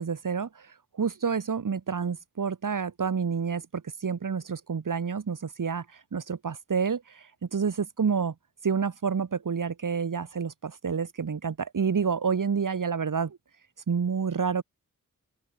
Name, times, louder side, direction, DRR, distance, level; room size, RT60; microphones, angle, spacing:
voice 1, 0.0-8.3 8.6-13.4 13.9-14.6, right 6 dB, 65° right, 2.4 m, -29 dB
open air
wide cardioid pair, 115°, 34 cm